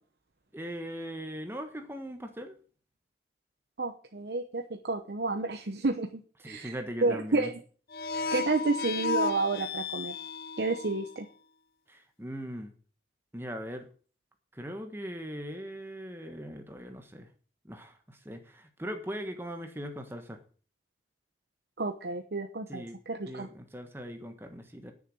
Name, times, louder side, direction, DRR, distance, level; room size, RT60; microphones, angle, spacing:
voice 1, 0.5-2.5 6.4-7.5 11.9-12.7 13.3-13.9 14.5-17.3 17.6-20.4 22.7-23.0 23.3-24.9, equal, 15° right, 6 dB, 1.3 m, -40 dB
voice 2, 3.8-6.7 7.0-7.5 8.1-10.1 10.6-11.3 21.8-23.5, right 3 dB, 70° right, 6 dB, 0.9 m, -31 dB
sound 1, 7.9-11.2, left 4 dB, 55° left, 0.6 m, -34 dB
9.7 x 6.8 x 7.6 m, 0.41 s
head